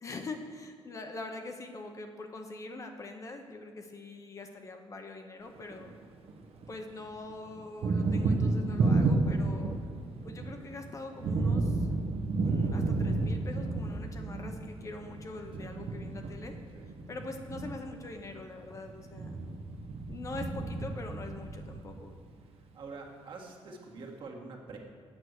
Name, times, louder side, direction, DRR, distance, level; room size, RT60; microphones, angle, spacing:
voice 1, 0.0-5.9 6.7-9.8 10.2-12.0 12.4-16.6 17.1-19.5 20.1-22.2, left 3 dB, 30° left, 5 dB, 0.8 m, -43 dB
Thunder, 5.6-6.8 7.0-22.3, right 3 dB, 75° right, 1.2 m, -31 dB
voice 2, 22.7-24.8, right 3 dB, 55° right, -1 dB, 1.7 m, -45 dB
8.8 x 6.3 x 8.1 m, 2.2 s
cardioid pair, 155°, 10 cm